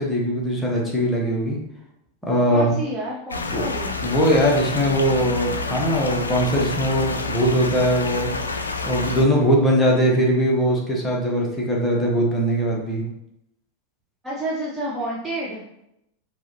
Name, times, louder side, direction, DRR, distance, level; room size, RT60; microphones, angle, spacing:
voice 1, 0.0-1.6 2.2-2.8 3.5-3.7 4.0-8.3 8.8-13.0, equal, 5° left, -3 dB, 1.1 m, -21 dB
voice 2, 2.5-4.0 14.2-15.6, right 1 dB, 15° right, -5 dB, 0.8 m, -29 dB
sound 1, 3.3-9.3, left 3 dB, 75° left, 0.4 m, -28 dB
4.6 x 3.1 x 2.9 m, 0.80 s
figure-of-eight pair, 90°, 0 cm